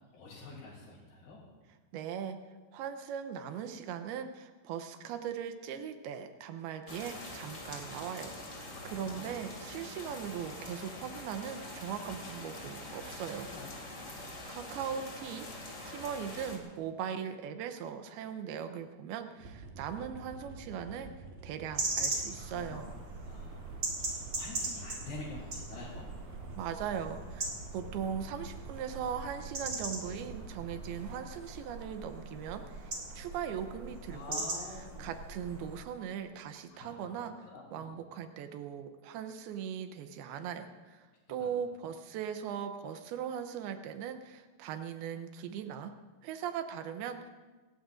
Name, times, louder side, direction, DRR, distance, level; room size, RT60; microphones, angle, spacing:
voice 1, 0.1-1.4 8.8-9.3 13.4-13.7 13.9-14.2 22.5-22.8 23.3-26.1 34.1-35.2 36.7-37.0 37.4-38.0 40.4-40.5 41.4-41.5, left 3 dB, 90° left, -7 dB, 5.3 m, -48 dB
voice 2, 1.9-2.4 2.7-13.5 14.5-15.5 15.9-21.1 21.4-22.9 26.6-34.4 35.0-37.3 37.7-45.9 46.2-47.3, right 8 dB, 90° right, 8 dB, 2.7 m, -39 dB
sound 1, 6.9-16.6, left 2 dB, 25° left, 2.1 m, -45 dB
sound 2, 19.4-30.9, right 3 dB, 70° right, 3.4 m, -48 dB
sound 3, 21.8-35.8, right 3 dB, 40° right, 3.7 m, -40 dB
29.0 x 16.5 x 2.6 m, 1.3 s
omnidirectional pair, 4.4 m